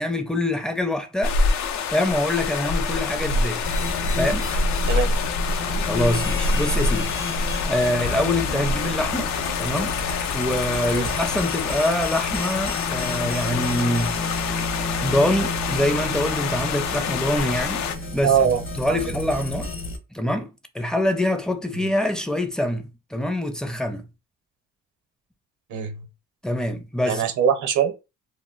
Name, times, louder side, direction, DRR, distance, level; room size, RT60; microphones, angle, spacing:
voice 1, 0.0-3.6 4.2-4.5 5.9-10.0 10.3-14.6 15.0-17.8 18.1-19.7 20.1-24.1 26.4-27.3, left 1 dB, ahead, 0.5 m, -25 dB
sound 1, 1.2-18.0, left 4 dB, 65° left, 0.5 m, -26 dB
sound 2, 3.6-20.0, left 2 dB, 45° left, 0.8 m, -31 dB
voice 2, 18.2-18.6 18.9-19.2 21.7-21.8 25.7-26.0 27.1-27.9, right 8 dB, 75° right, 0.7 m, -22 dB
2.2 x 2.1 x 3.8 m
cardioid pair, 90°, 30 cm